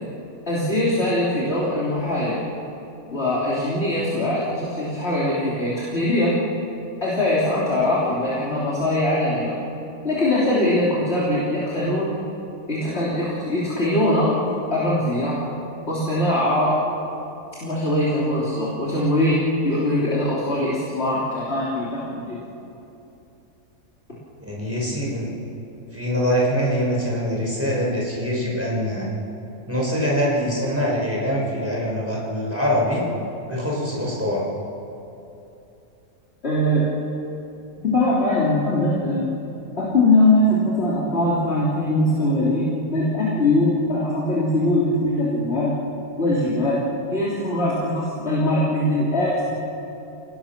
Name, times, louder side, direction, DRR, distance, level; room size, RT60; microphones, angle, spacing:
voice 1, 0.5-2.4 3.1-6.4 7.0-9.6 10.0-12.1 12.7-14.3 14.7-15.4 15.9-16.8 17.6-22.4 36.4-36.8 37.8-39.3 39.8-45.8 46.2-46.8 47.1-49.5, left 1 dB, 40° left, -8 dB, 3.5 m, -21 dB
voice 2, 24.4-25.3 25.9-29.1 29.7-33.0 33.5-34.4, equal, 10° right, -4 dB, 5.6 m, -23 dB
29.0 x 18.5 x 6.0 m, 2.9 s
omnidirectional pair, 1.6 m